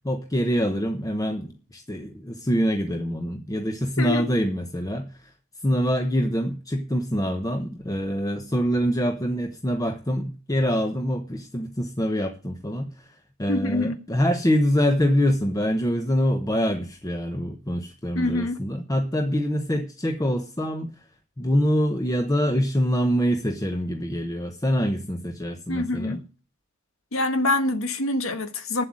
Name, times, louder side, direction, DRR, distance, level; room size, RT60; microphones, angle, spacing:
voice 1, 0.0-5.3 5.6-20.9 21.4-26.2, equal, 15° left, 0.9 m, -25 dB
voice 2, 4.0-4.3 13.5-14.0 18.1-18.6 25.7-26.2 27.1-28.8, left 2 dB, 85° left, 1.6 m, -25 dB
9.5 x 7.8 x 7.5 m
head